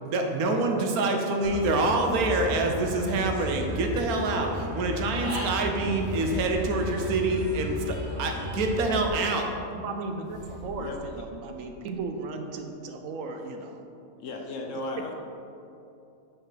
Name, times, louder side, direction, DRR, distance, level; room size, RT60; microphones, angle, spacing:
voice 1, 0.0-9.5, right 2 dB, 90° right, 3 dB, 1.2 m, -26 dB
Human voice / Bird, 1.4-9.1, left 1 dB, 50° right, 1.3 m, -34 dB
sound 1, 5.9-8.4 10.2-11.9, equal, 20° right, 0.5 m, -46 dB
voice 2, 9.8-13.8, right 3 dB, 70° right, 5 dB, 0.9 m, -36 dB
voice 3, 14.2-15.1, left 2 dB, 65° left, 2 dB, 1.0 m, -35 dB
5.4 x 3.7 x 5.9 m, 2.7 s
omnidirectional pair, 1.5 m